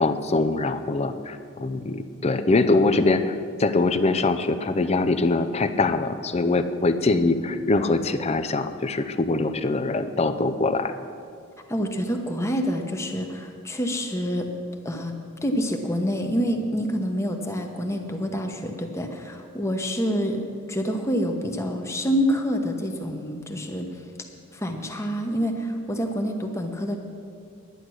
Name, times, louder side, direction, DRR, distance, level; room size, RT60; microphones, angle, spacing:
voice 1, 0.0-3.3 3.6-10.9, left 3 dB, 30° left, 10 dB, 0.5 m, -23 dB
voice 2, 11.7-14.5 14.8-15.1 15.4-20.4 20.7-23.9 24.5-27.0, equal, 15° left, 3 dB, 1.0 m, -27 dB
11.0 x 9.9 x 6.3 m, 2.3 s
head